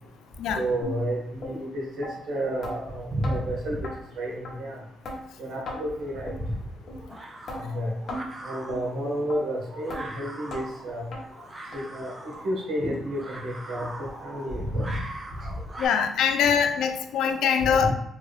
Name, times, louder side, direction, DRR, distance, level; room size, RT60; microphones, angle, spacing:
voice 1, 0.5-3.9 4.2-4.8 5.4-6.5 7.5-7.9 8.4-11.1 11.7-15.0 17.8-17.9, equal, 65° right, -2 dB, 1.2 m, -30 dB
sound 1, 0.8-1.0 1.4-1.5 2.0-2.1 2.6-2.8 3.2-3.4 3.8-3.9 4.4-4.5 5.0-5.2 5.7-5.8 6.3-6.4 6.9-7.0 7.5-7.6 8.1-8.3 8.7-8.8 9.3-9.4 9.9-10.0 10.5-10.6 11.1-11.2 11.7-11.8 12.3-12.4 12.9-13.0 13.5-13.6, left 1 dB, 60° left, 0.9 m, -35 dB
sound 2, 6.0-15.9, right 2 dB, 25° right, 0.6 m, -42 dB
voice 2, 15.8-17.9, left 7 dB, 80° left, 7 dB, 0.3 m, -23 dB
3.5 x 2.3 x 3.3 m, 0.81 s
cardioid pair, 90°, 0 cm